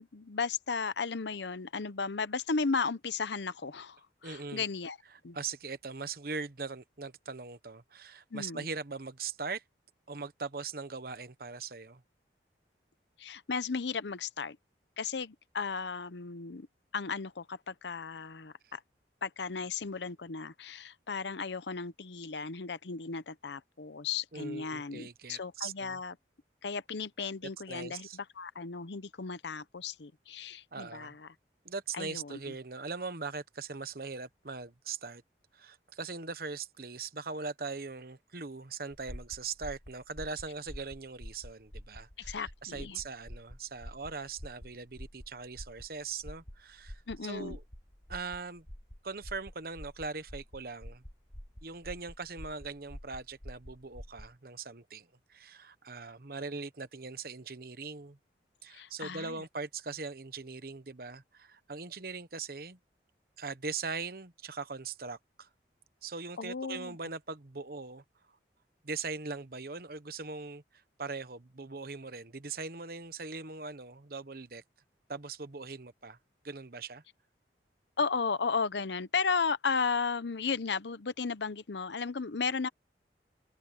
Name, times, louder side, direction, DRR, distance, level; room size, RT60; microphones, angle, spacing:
voice 1, 0.0-5.0 5.2-5.4 8.3-8.7 13.2-14.6 15.0-16.7 16.9-18.8 19.2-26.1 26.6-31.3 31.9-32.4 42.2-43.0 47.1-47.6 58.7-59.4 66.4-67.0 78.0-82.7, left 5 dB, 75° left, 0.8 m, -35 dB
voice 2, 4.2-4.7 5.3-9.6 10.1-12.0 18.6-18.7 24.3-26.0 27.7-28.2 30.7-31.1 31.6-35.2 35.5-47.6 48.1-48.7 49.0-51.0 51.6-58.2 58.6-62.8 63.4-65.5 66.0-68.0 68.8-74.6 75.1-76.2 76.4-77.0, right 4 dB, 55° right, 1.1 m, -41 dB
sound 1, 38.9-54.3, equal, 45° left, 3.0 m, -47 dB
open air
head